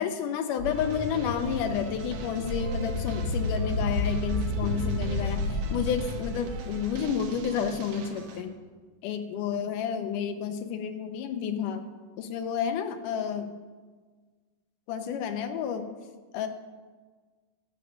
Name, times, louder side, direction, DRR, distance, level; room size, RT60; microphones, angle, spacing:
voice 1, 0.0-8.5 9.0-11.9 12.2-13.5 14.9-15.9 16.3-16.5, left 7 dB, 80° left, 8 dB, 2.3 m, -30 dB
sound 1, 0.6-7.7, left 2 dB, 45° left, 1.2 m, -31 dB
sound 2, 0.7-8.4, right 4 dB, 70° right, 2.2 m, -43 dB
12.5 x 7.4 x 6.2 m, 1.4 s
omnidirectional pair, 3.8 m